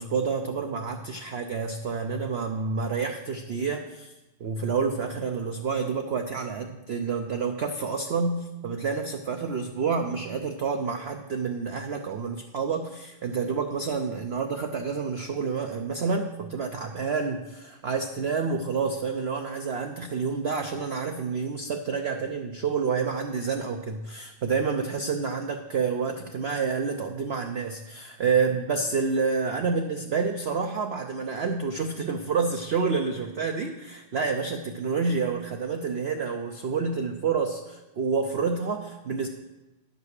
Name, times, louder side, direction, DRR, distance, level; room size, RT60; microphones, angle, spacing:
voice 1, 0.0-4.1 4.4-39.3, right 5 dB, 85° right, 5 dB, 0.5 m, -28 dB
10.5 x 5.2 x 6.5 m, 1.0 s
omnidirectional pair, 1.9 m